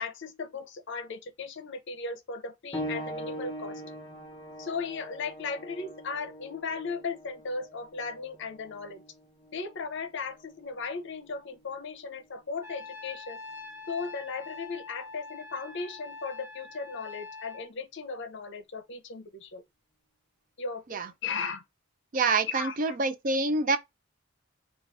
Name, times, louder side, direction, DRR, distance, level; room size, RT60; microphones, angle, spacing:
voice 1, 0.0-3.8 4.6-9.0 9.5-13.4 13.9-19.6 20.6-21.6 22.5-23.0, left 4 dB, 60° left, 0.7 m, -36 dB
sound 1, 2.7-13.0 13.9-14.0 14.8-14.9, equal, 20° left, 1.0 m, -43 dB
Trumpet, 12.6-17.7, left 3 dB, 15° right, 0.8 m, -44 dB
voice 2, 22.1-23.8, right 3 dB, 40° right, 0.5 m, -26 dB
3.1 x 2.4 x 3.9 m
head